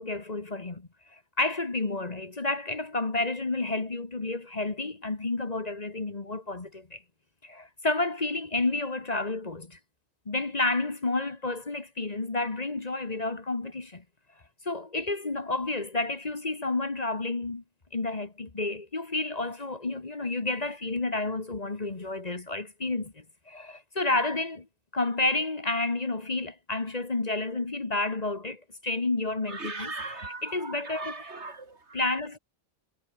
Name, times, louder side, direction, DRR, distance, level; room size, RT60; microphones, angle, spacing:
voice 1, 0.0-7.0 7.4-9.8 10.2-14.0 14.6-17.6 17.9-24.7 24.9-29.9 30.4-31.1 31.9-32.4, left 2 dB, 35° left, 1.6 m, -30 dB
voice 2, 29.5-32.1, right 3 dB, 70° right, 3.2 m, -39 dB
omnidirectional pair, 1.2 m